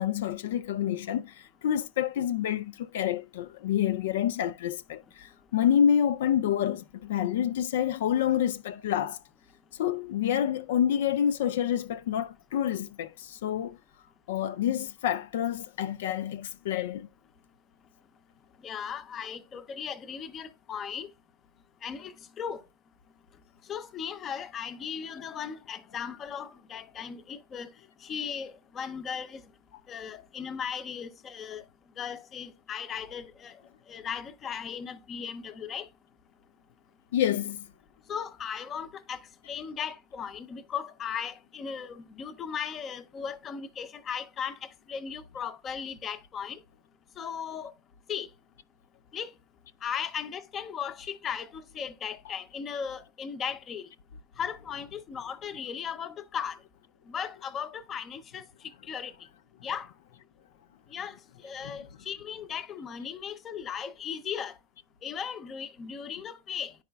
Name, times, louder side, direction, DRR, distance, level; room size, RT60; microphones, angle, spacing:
voice 1, 0.0-9.2 9.8-13.8 14.3-17.1 37.1-37.7 61.6-61.9, left 9 dB, 75° left, 0.3 m, -28 dB
voice 2, 18.6-21.1 21.8-22.6 23.7-27.7 28.0-29.4 29.9-31.6 32.0-33.6 33.9-35.9 38.1-46.6 47.2-47.7 48.1-48.3 49.1-49.3 49.8-53.9 54.4-56.6 57.1-58.5 58.8-59.1 59.6-59.9 60.9-64.6 65.0-66.7, left 7 dB, 20° left, 0.5 m, -37 dB
10.0 x 4.7 x 2.2 m
supercardioid pair, 160°, 0 cm